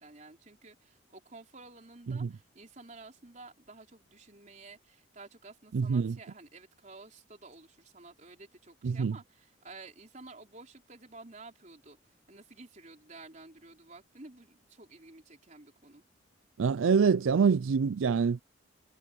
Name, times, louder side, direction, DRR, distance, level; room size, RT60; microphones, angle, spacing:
voice 1, 0.0-16.0, right 3 dB, 40° right, 4.2 m, -52 dB
voice 2, 5.7-6.1 8.8-9.2 16.6-18.4, right 5 dB, 85° right, 0.4 m, -25 dB
head